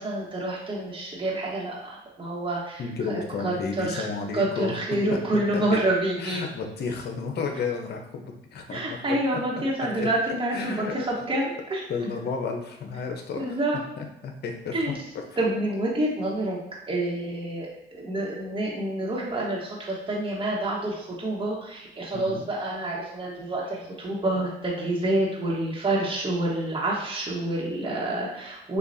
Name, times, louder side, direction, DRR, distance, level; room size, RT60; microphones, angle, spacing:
voice 1, 0.0-2.8 3.1-4.1 4.3-6.5 8.7-11.8 13.4-13.8 14.7-14.9 15.4-16.6 16.9-28.8, right 1 dB, 30° right, -4 dB, 1.2 m, -28 dB
voice 2, 2.8-4.8 5.1-5.2 5.5-5.8 6.2-8.8 9.8-10.1 10.5-11.2 11.9-13.6 14.0-14.7 15.3-15.4 22.1-22.4, left 5 dB, 65° left, 3 dB, 0.8 m, -32 dB
6.6 x 2.4 x 2.7 m, 0.89 s
cardioid pair, 75°, 18 cm